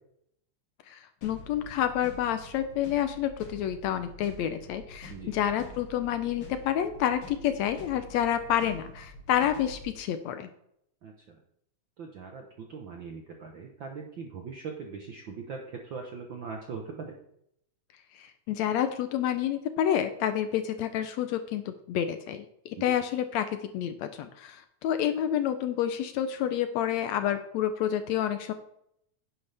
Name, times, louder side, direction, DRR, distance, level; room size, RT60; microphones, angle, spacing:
voice 1, 0.9-10.5 18.2-23.5 23.7-28.5, left 10 dB, 75° left, 9 dB, 1.8 m, -29 dB
sound 1, 1.2-10.0, equal, 50° left, 2.2 m, -47 dB
voice 2, 11.0-11.3 12.0-17.1 22.8-22.9, right 5 dB, 65° right, 2 dB, 1.2 m, -41 dB
10.5 x 9.8 x 3.4 m, 0.74 s
omnidirectional pair, 3.5 m